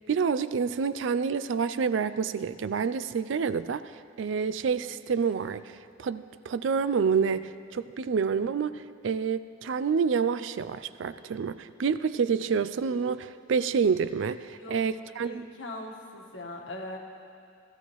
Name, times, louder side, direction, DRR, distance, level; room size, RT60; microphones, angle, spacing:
voice 1, 0.0-3.8 4.2-15.5, right 6 dB, 80° right, 14 dB, 0.4 m, -28 dB
voice 2, 14.6-14.9 15.2-17.0, left 1 dB, 75° left, 1 dB, 1.4 m, -40 dB
16.5 x 13.5 x 3.1 m, 2.5 s
head